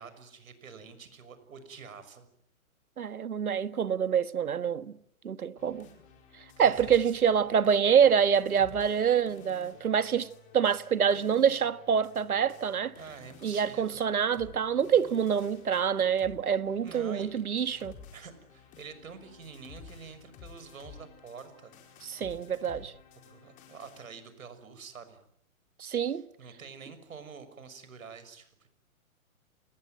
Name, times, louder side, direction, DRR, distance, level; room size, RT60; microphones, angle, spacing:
voice 1, 0.0-2.3 6.6-7.2 13.0-14.0 16.8-17.4 18.1-21.7 23.2-25.2 26.0-28.7, right 5 dB, 70° right, 6.3 m, -47 dB
voice 2, 3.0-4.9 5.2-5.9 6.6-12.9 13.4-17.9 22.0-22.9 25.8-26.2, right 7 dB, 90° right, 1.7 m, -26 dB
sound 1, 5.6-24.1, left 6 dB, 20° left, 4.8 m, -53 dB
28.5 x 21.5 x 9.2 m
hypercardioid pair, 160°, 42 cm